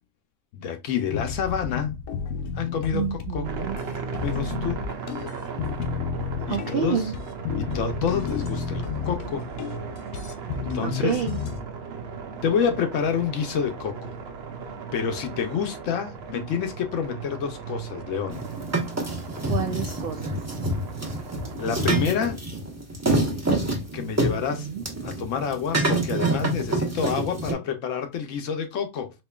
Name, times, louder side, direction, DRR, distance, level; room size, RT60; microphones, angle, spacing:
voice 1, 0.5-1.9 2.6-3.5 4.2-4.8 6.5-7.1 7.5-9.5 10.5-11.2 12.4-14.1 14.9-18.4 21.5-22.4 23.9-24.7 25.0-29.1, left 7 dB, 65° left, 0.9 m, -28 dB
sound 1, 1.1-11.6, left 6 dB, 80° left, 1.1 m, -32 dB
voice 2, 2.9-3.8 6.5-7.1 10.8-11.4 19.4-20.4 24.2-24.8, right 8 dB, 85° right, 0.5 m, -29 dB
sound 2, 3.4-22.0, right 5 dB, 55° right, 0.8 m, -37 dB
sound 3, 18.3-27.5, right 2 dB, 15° right, 0.6 m, -27 dB
4.2 x 3.0 x 2.2 m
omnidirectional pair, 1.6 m